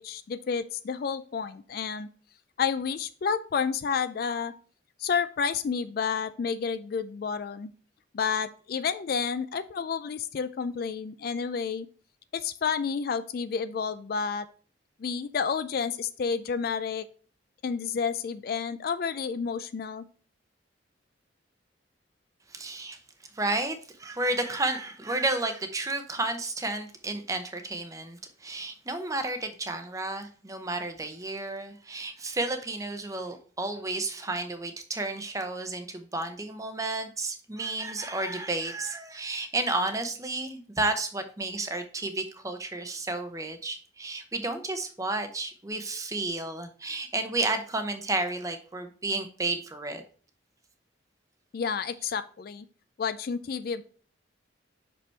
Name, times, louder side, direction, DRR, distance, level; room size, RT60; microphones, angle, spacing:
voice 1, 0.0-2.1 2.6-4.5 5.0-7.7 8.1-11.9 12.3-14.5 15.0-17.1 17.6-20.0 51.5-52.7 53.0-53.8, left 6 dB, 50° left, 13 dB, 0.3 m, -30 dB
voice 2, 22.5-23.0 23.3-50.0, right 2 dB, 15° right, 7 dB, 0.7 m, -32 dB
6.0 x 5.2 x 3.3 m, 0.42 s
head